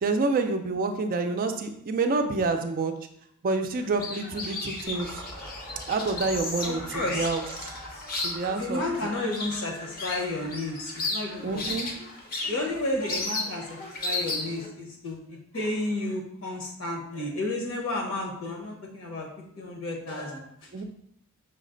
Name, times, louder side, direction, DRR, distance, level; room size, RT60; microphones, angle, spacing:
voice 1, 0.0-2.9 3.4-5.1 5.9-7.7 8.2-8.8 11.4-11.9 20.7-20.8, right 3 dB, 40° right, 5 dB, 0.4 m, -28 dB
sound 1, 3.8-14.7, left 2 dB, 40° left, 0.7 m, -35 dB
sound 2, 4.9-14.6, equal, 85° left, 1.6 m, -44 dB
voice 2, 6.6-7.3 8.5-11.6 12.5-19.3 19.6-20.4, left 2 dB, 70° left, -1 dB, 1.1 m, -32 dB
5.8 x 2.1 x 3.8 m, 0.73 s
head